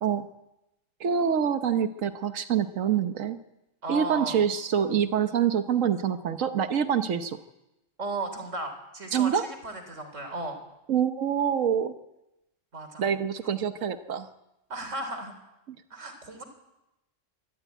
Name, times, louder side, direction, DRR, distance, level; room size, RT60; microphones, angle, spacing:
voice 1, 1.0-3.4 3.9-7.4 9.1-9.4 10.9-11.9 13.0-14.3, right 8 dB, 90° right, 9 dB, 1.4 m, -26 dB
voice 2, 3.8-4.5 8.0-10.6 12.7-13.0 14.7-15.3 15.9-16.4, right 2 dB, 75° right, 7 dB, 4.0 m, -35 dB
24.5 x 13.5 x 9.2 m, 0.94 s
omnidirectional pair, 1.3 m